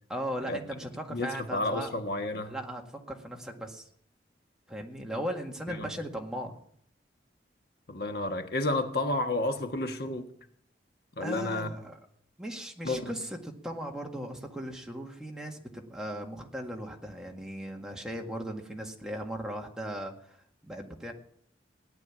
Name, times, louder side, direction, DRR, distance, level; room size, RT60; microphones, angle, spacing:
voice 1, 0.1-1.9 2.5-2.8 3.1-3.8 4.7-6.6 11.2-12.0 12.4-20.4 20.6-21.1, equal, 5° right, 1.8 m, -37 dB
voice 2, 1.1-2.5 5.7-5.9 7.9-10.3 11.1-11.7 12.8-13.1, left 2 dB, 60° left, 1.4 m, -31 dB
17.0 x 10.5 x 7.3 m
head